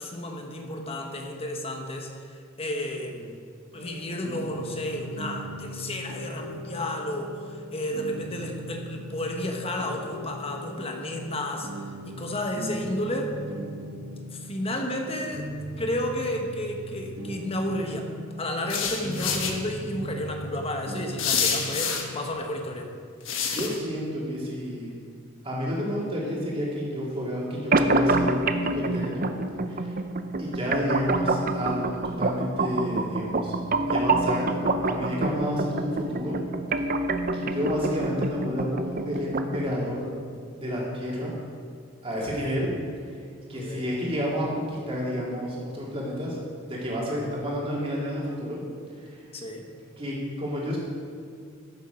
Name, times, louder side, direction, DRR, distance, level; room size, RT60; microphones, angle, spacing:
voice 1, 0.0-2.2 2.6-3.4 3.7-13.4 14.3-15.5 15.8-18.1 18.4-22.9 42.1-42.6 43.5-43.9 49.3-49.7, left 1 dB, 30° left, 3 dB, 1.2 m, -32 dB
sound 1, 3.7-22.3, equal, 70° right, 2.2 m, -38 dB
sound 2, 18.7-19.5 21.2-22.0 23.3-23.8, left 6 dB, 65° left, 1.3 m, -27 dB
voice 2, 23.5-24.9 25.4-29.2 29.7-30.0 30.4-33.5 33.9-36.4 37.3-40.1 40.5-41.3 42.0-42.7 43.5-46.4 46.6-48.6 49.0-49.2 50.0-50.8, equal, 25° right, -5 dB, 2.8 m, -30 dB
sound 3, 27.7-39.7, right 2 dB, 45° right, 0.5 m, -27 dB
13.0 x 7.3 x 5.2 m, 2.2 s
head